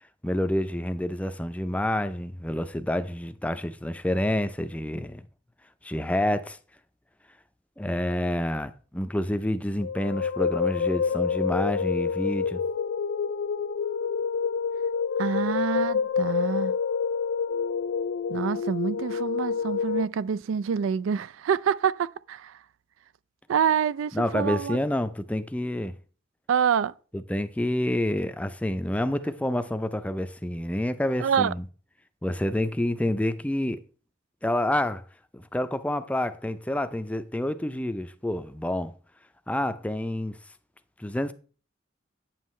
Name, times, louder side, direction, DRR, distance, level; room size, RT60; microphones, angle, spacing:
voice 1, 0.2-5.2 5.8-6.6 7.8-12.6 24.1-26.0 27.1-31.6 32.2-33.8 34.4-35.0 35.3-38.9 39.5-40.4 41.0-41.3, left 1 dB, 5° left, 0.4 m, -28 dB
sound 1, 9.8-20.1, left 6 dB, 75° left, 0.4 m, -28 dB
voice 2, 15.2-16.7 18.3-22.6 23.5-24.8 26.5-27.0 31.2-31.5, right 7 dB, 85° right, 0.3 m, -26 dB
9.2 x 7.4 x 3.1 m
head